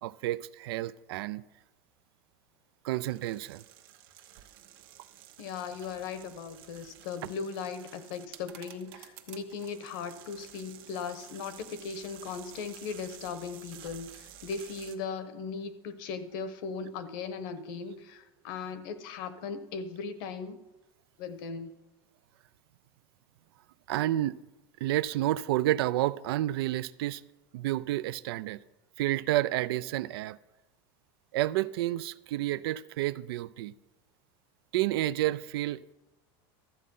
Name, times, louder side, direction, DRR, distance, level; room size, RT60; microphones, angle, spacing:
voice 1, 0.0-1.4 2.8-3.6 23.9-24.4 24.8-27.2 27.5-28.6 29.0-30.4 31.3-33.7 34.7-35.9, right 15 dB, 90° right, 0.4 m, -30 dB
sound 1, 3.0-15.0, right 11 dB, 75° right, 1.1 m, -51 dB
voice 2, 5.4-20.6 21.2-21.7, left 5 dB, 65° left, 1.0 m, -38 dB
13.0 x 7.5 x 5.4 m
supercardioid pair, 160°, 12 cm